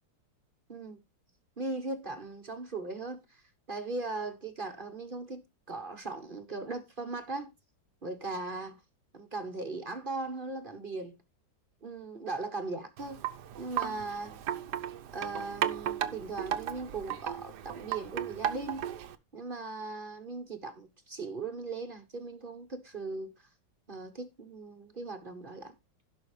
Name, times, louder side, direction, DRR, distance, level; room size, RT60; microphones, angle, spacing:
voice 1, 0.7-1.0 1.6-3.4 3.7-5.4 5.7-7.5 8.0-8.8 9.1-11.2 11.8-13.2 13.6-14.4 15.1-18.9 19.3-23.3 23.9-25.7, right 3 dB, 35° right, 1.1 m, -38 dB
Wind chime, 13.0-19.2, right 10 dB, 65° right, 1.3 m, -35 dB
16.5 x 5.6 x 3.2 m
omnidirectional pair, 2.1 m